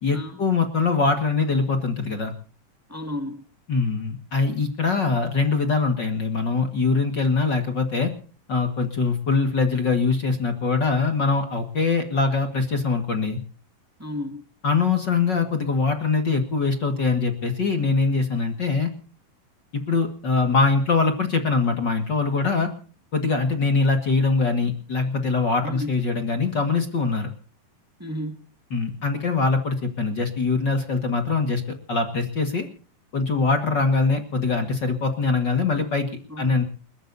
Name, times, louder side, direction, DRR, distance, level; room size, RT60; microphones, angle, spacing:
voice 1, 0.0-2.3 3.7-8.1 8.5-13.4 14.6-18.9 19.7-22.7 23.1-27.3 28.7-32.7 33.1-36.1 36.4-36.6, left 4 dB, 40° left, 6 dB, 1.8 m, -23 dB
voice 2, 2.9-3.4 14.0-14.4 25.6-25.9 28.0-28.4 36.3-36.6, left 1 dB, 15° right, 6 dB, 0.4 m, -32 dB
29.5 x 14.0 x 2.7 m, 0.40 s
omnidirectional pair, 4.1 m